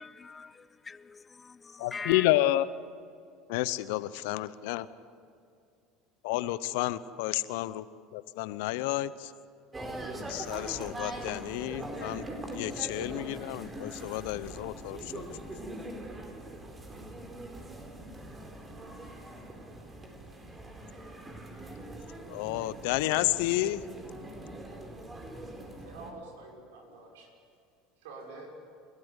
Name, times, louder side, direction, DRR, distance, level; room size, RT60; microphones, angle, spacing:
voice 1, 0.0-2.3, left 5 dB, 25° left, 0.5 m, -43 dB
voice 2, 1.8-2.7 3.5-4.9 6.2-7.8 8.1-9.3 10.3-12.2 12.5-15.4 22.3-23.8, left 16 dB, 70° left, 0.7 m, -30 dB
sound 1, 9.7-26.1, right 1 dB, 25° right, 4.2 m, -42 dB
voice 3, 25.8-27.3 28.0-28.5, right 3 dB, 75° right, 6.1 m, -47 dB
29.5 x 13.0 x 8.1 m
hypercardioid pair, 75°, 0 cm